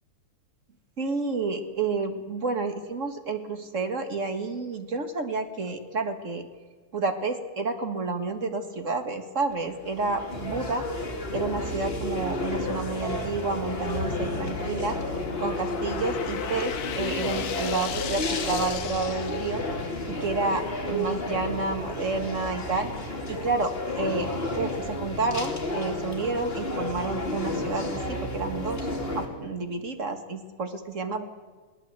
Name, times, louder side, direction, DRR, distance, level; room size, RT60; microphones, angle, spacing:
voice 1, 1.0-6.5 6.9-10.8 11.3-15.0 15.4-22.9 23.3-28.9 29.1-31.2, right 3 dB, 35° right, 7 dB, 1.4 m, -30 dB
sound 1, 9.5-29.3, left 1 dB, 20° left, 2.8 m, -32 dB
sound 2, 13.7-20.0, left 8 dB, 70° left, 2.4 m, -36 dB
21.5 x 18.0 x 8.1 m, 1.4 s
omnidirectional pair, 3.3 m